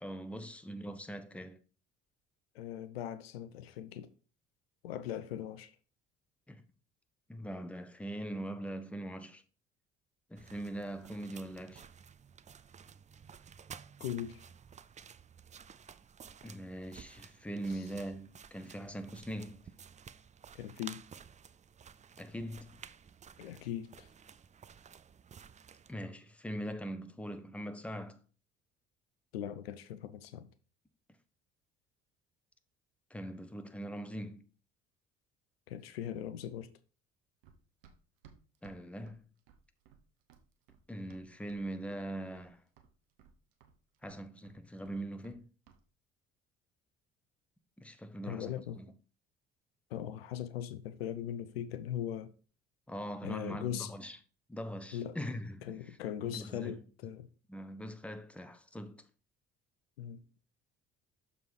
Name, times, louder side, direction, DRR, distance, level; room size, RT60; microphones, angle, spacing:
voice 1, 0.0-1.6 6.5-6.6 7.3-9.4 10.3-11.9 16.4-19.7 22.2-22.8 25.9-28.2 33.1-34.4 38.6-39.2 40.9-42.6 44.0-45.5 47.8-48.9 52.9-54.2 54.5-56.0 56.3-56.8 57.5-59.1, right 1 dB, 5° left, 0.9 m, -42 dB
voice 2, 2.5-4.1 4.8-5.8 14.0-14.4 20.5-21.0 23.4-24.1 29.3-30.5 35.7-36.7 48.2-48.8 49.9-52.3 53.2-53.9 54.9-55.2 55.7-57.3 60.0-60.2, left 10 dB, 85° left, 0.5 m, -39 dB
sound 1, 10.4-25.9, right 7 dB, 25° right, 0.5 m, -54 dB
Run, 37.4-41.7 41.9-42.5 42.8-45.4 45.7-45.8, right 7 dB, 75° right, 1.0 m, -61 dB
6.8 x 4.1 x 4.7 m
hypercardioid pair, 55°, 29 cm